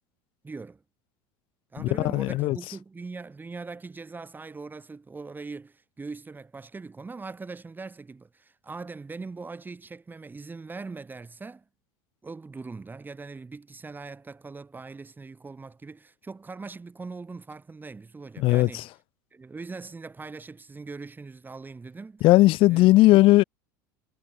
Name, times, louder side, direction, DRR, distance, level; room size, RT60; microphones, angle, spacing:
voice 1, 0.4-0.8 1.7-11.6 12.2-18.8 19.3-22.2 22.7-22.9, right 4 dB, 15° right, 3.0 m, -41 dB
voice 2, 1.8-2.6 18.4-18.8 22.2-23.4, left 18 dB, 50° left, 0.9 m, -18 dB
hypercardioid pair, 85°, 11 cm